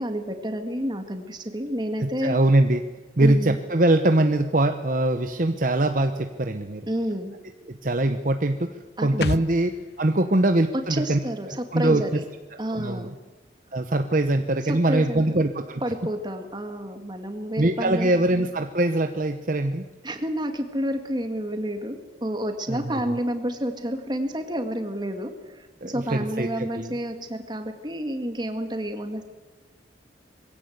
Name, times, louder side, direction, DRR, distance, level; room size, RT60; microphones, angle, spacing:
voice 1, 0.0-2.4 3.2-3.6 6.9-7.3 9.0-9.3 10.9-12.2 12.6-13.1 14.7-15.3 15.8-18.2 20.0-29.2, equal, 25° right, 6 dB, 2.0 m, -30 dB
voice 2, 2.0-2.8 3.2-6.9 7.7-8.7 9.0-9.7 10.0-11.2 11.7-12.0 12.5-13.1 13.7-15.8 17.6-19.8 22.7-23.0 25.8-26.9, right 1 dB, 45° right, 7 dB, 0.9 m, -22 dB
sound 1, 9.2-12.7 13.0-13.1, left 4 dB, 60° left, 0.6 m, -36 dB
22.0 x 16.5 x 8.0 m, 1.3 s
head